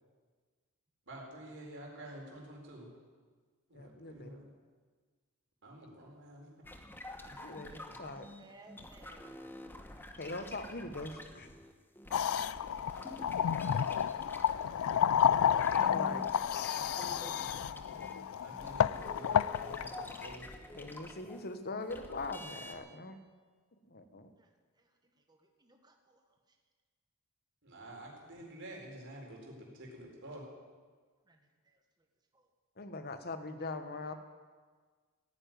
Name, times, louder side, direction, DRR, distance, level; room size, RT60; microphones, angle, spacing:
voice 1, 1.1-2.9 3.7-4.5 5.6-6.5 7.3-7.4 16.7-17.5 18.4-20.4 27.6-30.4, right 1 dB, 60° right, -1 dB, 4.3 m, -49 dB
voice 2, 3.7-4.4 7.4-8.2 10.2-11.5 15.9-16.2 20.8-23.2 23.9-24.3 32.8-34.1, left 3 dB, 50° left, 9 dB, 1.3 m, -42 dB
sound 1, 6.6-15.0 15.2-22.8, left 1 dB, 10° left, 1.1 m, -48 dB
voice 3, 7.6-9.5 13.8-15.4 24.3-26.6 31.2-32.1 32.3-32.5 33.6-33.7, right 2 dB, 20° right, 3 dB, 1.5 m, -61 dB
sound 2, 12.1-20.4, left 8 dB, 75° left, 0.4 m, -31 dB
15.5 x 9.9 x 9.3 m, 1.5 s
head